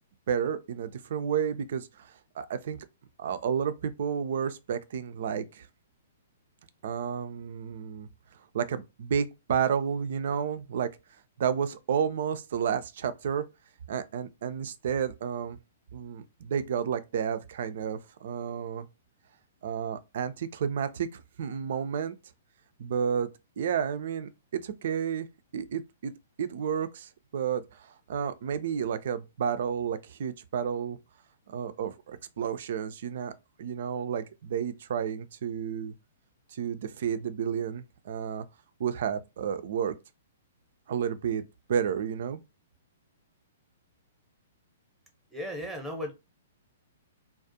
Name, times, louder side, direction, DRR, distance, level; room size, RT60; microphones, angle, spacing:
voice 1, 0.3-2.9 3.2-5.7 6.8-8.1 8.5-10.9 11.4-13.4 13.9-15.6 15.9-18.9 19.6-22.1 22.8-23.3 23.6-25.3 25.5-26.1 26.4-31.0 31.5-33.3 33.6-35.9 36.5-38.5 38.8-40.0 40.9-41.4 41.7-42.4, right 7 dB, 55° right, 0.3 m, -31 dB
voice 2, 45.3-46.1, left 1 dB, 5° right, 0.8 m, -35 dB
2.4 x 2.0 x 2.7 m
figure-of-eight pair, 115°, 0 cm